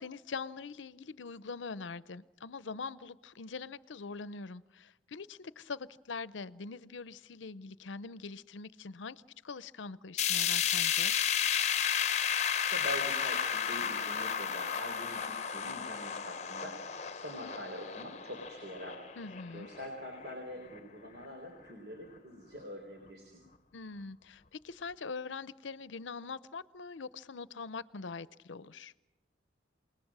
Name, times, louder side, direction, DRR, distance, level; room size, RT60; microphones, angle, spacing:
voice 1, 0.0-11.1 19.2-19.7 23.7-28.9, left 4 dB, 85° left, 18 dB, 0.7 m, -43 dB
sound 1, 10.2-20.3 20.7-20.8 21.2-21.3 22.2-22.3, left 8 dB, 35° left, 0.9 m, -33 dB
voice 2, 12.5-19.0 19.5-23.4, equal, 60° right, 3 dB, 3.9 m, -44 dB
28.0 x 19.5 x 6.1 m, 1.1 s
head